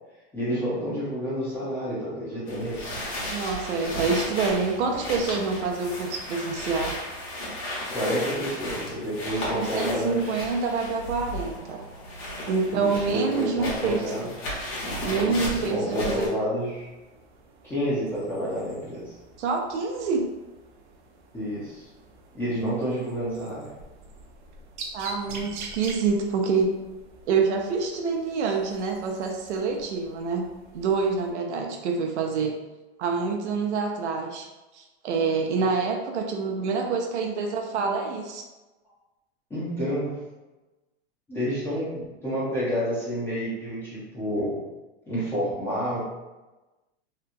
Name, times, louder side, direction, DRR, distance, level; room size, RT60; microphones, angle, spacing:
voice 1, 0.3-2.9 7.9-10.4 12.6-14.3 15.1-16.9 17.6-19.2 21.3-21.9 22.3-23.7 25.3-25.4 39.5-40.2 41.3-44.6 45.1-46.0, equal, 5° left, -11 dB, 0.5 m, -29 dB
sound 1, 2.5-16.3, equal, 45° left, 1.1 m, -34 dB
voice 2, 3.3-7.0 9.5-11.8 12.5-14.3 15.1-16.3 19.4-20.3 24.9-26.7 27.3-30.5 30.7-32.5 33.0-34.5 34.7-38.4, right 4 dB, 90° right, 2 dB, 0.6 m, -27 dB
sound 2, 16.6-31.3, right 3 dB, 45° right, 0.5 m, -46 dB
2.9 x 2.3 x 2.5 m, 1.1 s
supercardioid pair, 150°, 33 cm